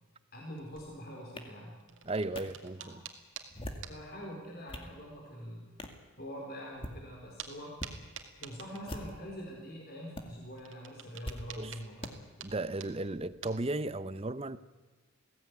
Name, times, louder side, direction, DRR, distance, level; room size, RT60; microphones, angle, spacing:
voice 1, 0.3-1.8 2.8-3.0 3.9-5.7 6.2-7.8 8.4-12.1, equal, 45° left, 4.4 m, -44 dB
sound 1, 0.6-1.0 1.7-3.5 3.8-3.9 4.6-4.7 6.4-6.5 7.4-7.6 7.8-9.3 10.5-13.7, right 8 dB, 65° right, 2.4 m, -48 dB
sound 2, 1.4-1.5 2.3-2.4 3.4-3.9 4.4-4.9 5.8-6.0 6.7-7.0 7.7-7.9 8.8-9.3 10.1-10.2 11.2-11.4 12.0-12.1, left 1 dB, 25° left, 2.1 m, -42 dB
voice 2, 2.0-3.0 11.6-11.8 12.4-14.6, right 2 dB, 30° right, 0.7 m, -35 dB
21.5 x 16.5 x 9.7 m
head